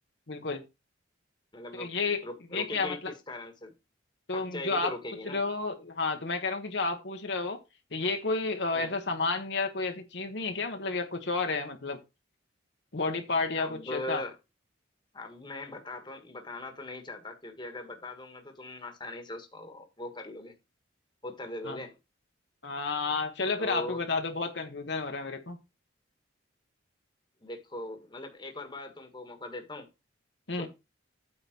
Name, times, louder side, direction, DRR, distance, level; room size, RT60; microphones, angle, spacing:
voice 1, 0.3-0.6 1.7-2.2 2.5-3.1 4.3-4.9 5.2-7.6 7.9-12.0 12.9-14.2 21.7-21.8 22.6-25.6 30.5-30.7, left 3 dB, 60° left, 1.2 m, -31 dB
voice 2, 1.5-1.9 2.2-3.7 4.3-5.4 8.7-8.9 13.6-14.3 15.1-20.5 21.2-22.0 23.6-24.0 27.4-29.9 30.5-30.7, left 1 dB, 25° left, 1.5 m, -40 dB
8.9 x 3.8 x 5.9 m
head